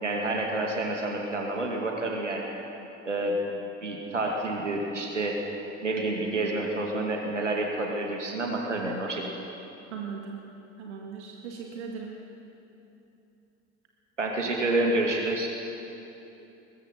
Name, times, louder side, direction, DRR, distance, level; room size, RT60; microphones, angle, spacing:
voice 1, 0.0-2.5 3.1-3.4 3.8-5.4 5.8-9.2 14.2-15.5, right 2 dB, 85° right, 1 dB, 2.4 m, -28 dB
voice 2, 9.9-10.4 10.8-12.2, right 6 dB, 70° right, 0 dB, 2.0 m, -38 dB
22.5 x 20.5 x 5.7 m, 2.9 s
figure-of-eight pair, 65°, 36 cm